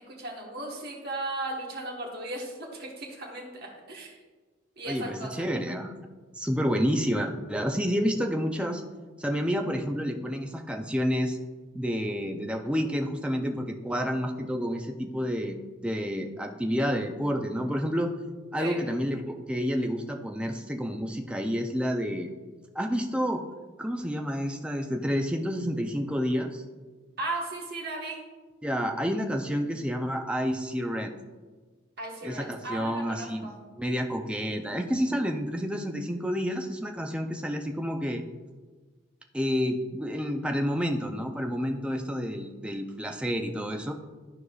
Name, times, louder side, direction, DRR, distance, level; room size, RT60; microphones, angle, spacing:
voice 1, 0.1-4.2 4.8-5.4 18.6-18.8 27.2-28.2 32.0-33.5, right 2 dB, 50° right, -1 dB, 1.4 m, -36 dB
voice 2, 4.9-5.9 6.3-8.8 9.2-11.4 11.7-15.6 15.8-18.1 18.5-22.3 22.7-23.4 23.8-26.6 28.6-31.1 32.2-38.2 39.3-43.9, equal, 5° right, 3 dB, 0.4 m, -29 dB
12.0 x 4.7 x 2.4 m, 1.4 s
head